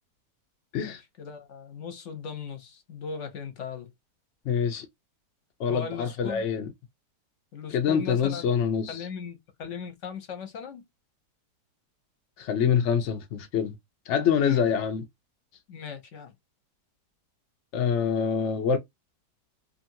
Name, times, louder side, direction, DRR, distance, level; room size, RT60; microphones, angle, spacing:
voice 1, 0.8-3.9 5.7-6.5 7.5-8.5 8.9-10.8 14.4-14.7 15.7-16.3, left 6 dB, 55° left, 1.0 m, -38 dB
voice 2, 4.5-4.9 5.6-6.7 7.7-9.0 12.4-13.8 14.1-15.0 17.7-18.8, left 7 dB, 75° left, 0.6 m, -25 dB
2.9 x 2.5 x 2.6 m
omnidirectional pair, 1.9 m